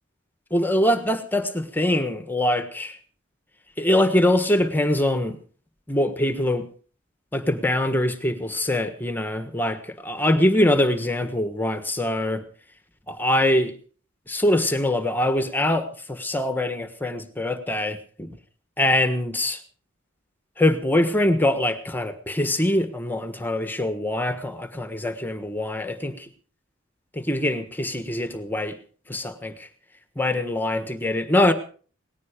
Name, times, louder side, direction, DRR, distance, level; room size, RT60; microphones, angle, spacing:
voice 1, 0.5-3.0 3.8-5.4 5.9-6.7 7.3-12.5 13.1-13.7 14.3-18.3 18.8-19.6 20.6-26.3 27.1-28.8 29.1-29.7 30.2-31.5, left 1 dB, 10° left, 1.4 m, -23 dB
19.0 x 15.0 x 5.2 m
head